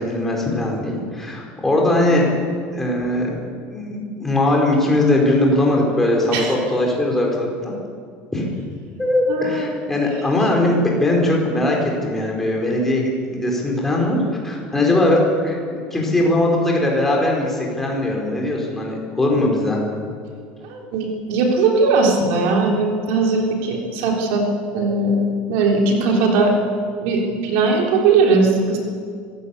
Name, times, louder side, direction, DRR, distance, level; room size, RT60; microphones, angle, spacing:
voice 1, 0.0-2.3 2.7-3.4 3.7-7.7 8.3-8.5 9.0-14.2 14.4-19.8, left 1 dB, 5° left, -1 dB, 4.4 m, -20 dB
voice 2, 9.3-9.7 20.6-24.5 24.7-26.5 27.0-28.8, right 3 dB, 60° right, 0 dB, 3.6 m, -19 dB
24.5 x 16.0 x 8.3 m, 2.1 s
cardioid pair, 175°, 4 cm